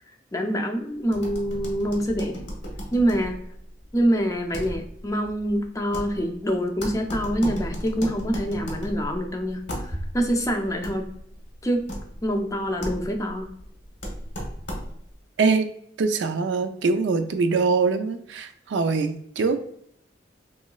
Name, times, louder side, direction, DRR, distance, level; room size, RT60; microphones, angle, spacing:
voice 1, 0.3-2.3 2.9-3.4 3.9-11.0 11.6-11.8 12.2-13.5, equal, 20° left, 3 dB, 0.4 m, -25 dB
sound 1, 1.1-15.2, equal, 85° left, 1.0 m, -36 dB
voice 2, 16.0-19.8, right 4 dB, 90° right, 8 dB, 0.4 m, -23 dB
3.8 x 3.1 x 2.3 m, 0.69 s
head